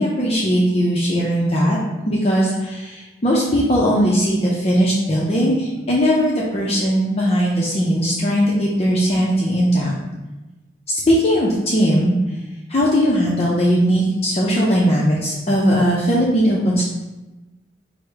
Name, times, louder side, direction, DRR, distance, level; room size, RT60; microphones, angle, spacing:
voice 1, 0.0-1.8 2.1-10.0 10.9-12.1 12.7-16.8, equal, 35° left, -4 dB, 0.5 m, -18 dB
4.7 x 2.1 x 4.6 m, 1.1 s
head